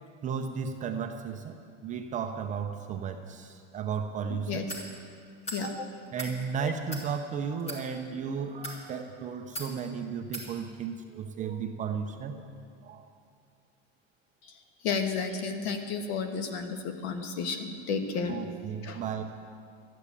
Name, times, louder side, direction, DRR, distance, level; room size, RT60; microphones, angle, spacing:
voice 1, 0.2-4.7 5.6-5.7 6.1-12.4 12.8-13.1 18.3-19.2, right 6 dB, 25° right, 5 dB, 0.5 m, -34 dB
voice 2, 4.3-4.7 5.5-5.9 6.6-6.7 14.4-14.6 14.8-18.4 18.8-19.0, left 5 dB, 60° left, 6 dB, 1.5 m, -32 dB
sound 1, 4.7-4.9 5.4-5.6 6.0-6.3 6.9-7.1 7.6-7.8 8.5-8.8 9.5-9.7 10.3-10.5, equal, 20° left, 2.3 m, -38 dB
13.5 x 9.3 x 8.3 m, 2.2 s
cardioid pair, 165°, 34 cm